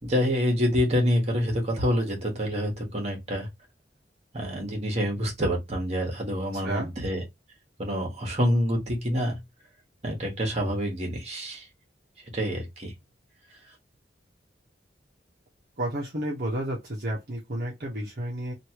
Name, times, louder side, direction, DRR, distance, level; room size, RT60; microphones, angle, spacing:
voice 1, 0.0-3.5 4.3-7.2 7.8-9.4 10.0-11.6 12.3-12.9, equal, 35° right, 1.4 m, -27 dB
voice 2, 6.5-6.9 15.8-18.5, right 1 dB, 55° right, 1.0 m, -31 dB
3.2 x 2.7 x 2.9 m
head